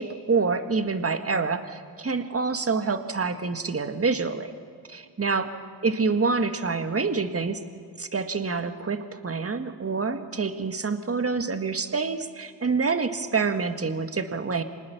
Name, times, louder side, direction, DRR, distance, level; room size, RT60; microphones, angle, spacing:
voice 1, 0.0-4.5 4.9-5.5 5.8-7.6 8.0-14.6, right 4 dB, 35° right, 8 dB, 1.8 m, -27 dB
25.5 x 19.5 x 7.1 m, 2.2 s
cardioid pair, 60°, 40 cm